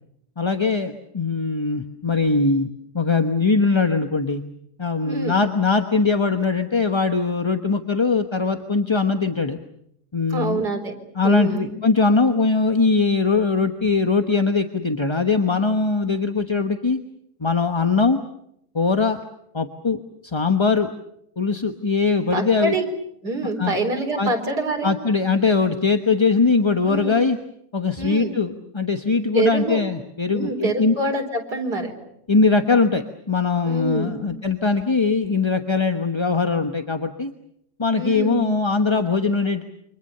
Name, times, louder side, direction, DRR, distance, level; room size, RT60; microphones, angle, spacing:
voice 1, 0.4-4.4 4.8-9.6 10.1-10.6 11.1-17.0 17.4-18.2 18.7-19.2 19.5-20.9 21.4-22.7 23.6-23.8 24.2-24.3 24.8-27.4 27.7-31.0 32.3-37.3 37.8-39.6, left 4 dB, 20° left, 7 dB, 1.0 m, -21 dB
voice 2, 5.0-5.5 10.3-10.9 11.2-11.7 22.3-22.8 23.2-24.9 26.8-27.1 28.0-28.3 29.3-29.8 30.3-31.9 33.6-34.3 38.0-38.5, right 2 dB, 80° right, 3 dB, 4.8 m, -25 dB
29.0 x 25.0 x 6.8 m, 0.75 s
omnidirectional pair, 1.7 m